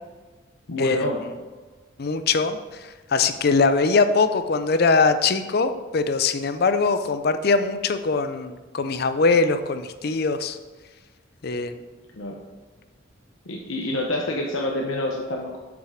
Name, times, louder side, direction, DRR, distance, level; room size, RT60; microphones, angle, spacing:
voice 1, 0.7-1.2 12.1-12.4 13.5-15.6, left 1 dB, 90° left, 0 dB, 1.0 m, -27 dB
voice 2, 2.0-10.6 11.4-11.7, left 4 dB, 55° left, 10 dB, 0.5 m, -22 dB
7.4 x 6.0 x 5.0 m, 1.3 s
head